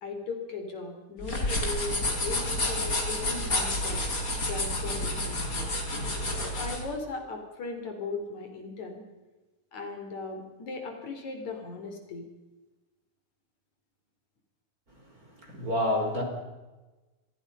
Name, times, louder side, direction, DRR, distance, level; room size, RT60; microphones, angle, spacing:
voice 1, 0.0-4.0 4.5-5.8 6.4-9.0 9.7-12.3, left 3 dB, 65° left, 5 dB, 4.7 m, -38 dB
sound 1, 1.2-6.8, left 1 dB, 25° left, 4.3 m, -30 dB
voice 2, 15.4-16.2, left 1 dB, 25° right, 2 dB, 4.9 m, -28 dB
27.5 x 20.5 x 5.5 m, 1.1 s
omnidirectional pair, 3.6 m